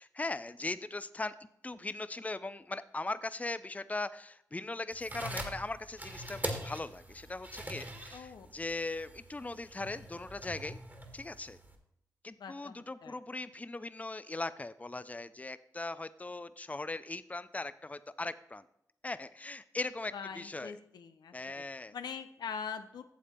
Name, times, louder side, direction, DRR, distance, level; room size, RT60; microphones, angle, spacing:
voice 1, 0.0-1.3 1.6-10.8 11.1-11.6 12.2-18.6 19.0-20.8 21.3-21.9, left 2 dB, 20° left, 15 dB, 0.5 m, -39 dB
sound 1, 4.9-11.8, right 1 dB, 25° right, 1.8 m, -43 dB
voice 2, 8.1-8.5 12.4-13.2 20.1-21.3 21.9-23.0, left 6 dB, 85° left, 9 dB, 0.6 m, -42 dB
8.6 x 7.3 x 4.4 m, 0.76 s
supercardioid pair, 40°, 7 cm